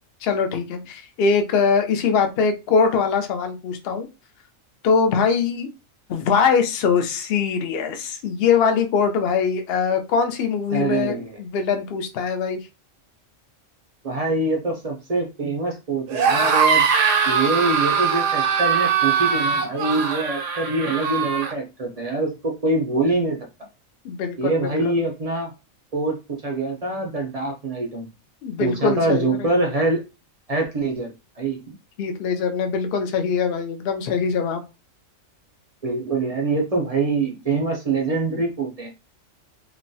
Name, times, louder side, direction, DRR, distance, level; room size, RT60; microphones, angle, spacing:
voice 1, 0.2-4.1 4.8-5.7 6.1-12.7 24.0-25.0 28.4-29.5 32.0-34.6, left 5 dB, 60° left, 6 dB, 0.7 m, -22 dB
voice 2, 10.7-11.4 14.0-16.8 17.3-23.4 24.4-25.5 25.9-28.1 28.6-30.0 30.5-31.6 35.8-38.9, right 3 dB, 45° right, 1 dB, 0.4 m, -24 dB
sound 1, 16.1-21.5, right 6 dB, 70° right, 0.9 m, -21 dB
3.0 x 2.3 x 2.6 m, 0.27 s
omnidirectional pair, 1.4 m